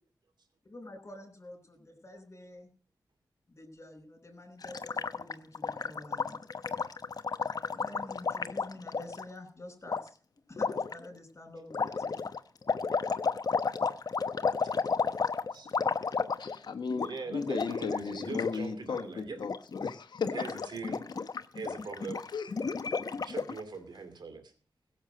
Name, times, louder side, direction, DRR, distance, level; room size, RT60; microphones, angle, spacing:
voice 1, 0.6-2.7 3.5-6.7 7.7-10.2 10.5-12.2, left 1 dB, 35° left, 4.9 m, -48 dB
Gurgling, 4.6-9.2 9.9-10.0 10.6-10.9 11.7-16.7 16.9-17.1 17.4-18.6 18.8-19.0 19.4-19.9 20.2-23.6, left 5 dB, 55° left, 0.8 m, -32 dB
voice 2, 15.1-15.7 17.0-19.4 20.3-21.0 21.5-22.2 23.3-24.5, right 4 dB, 70° right, 2.6 m, -41 dB
voice 3, 16.4-20.5 22.3-23.2, left 5 dB, 70° left, 1.2 m, -36 dB
16.0 x 7.3 x 7.6 m
cardioid pair, 40°, 8 cm